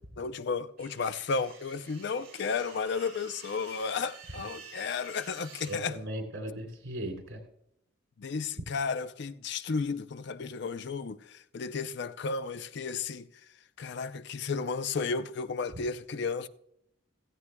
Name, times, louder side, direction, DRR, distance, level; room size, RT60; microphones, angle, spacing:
voice 1, 0.0-6.0 8.2-13.3 13.8-16.5, left 5 dB, 55° left, 0.5 m, -33 dB
sound 1, 0.8-5.8, right 5 dB, 50° right, 5.7 m, -50 dB
voice 2, 5.7-7.4, right 1 dB, 75° right, 3.0 m, -37 dB
15.5 x 14.5 x 2.2 m
head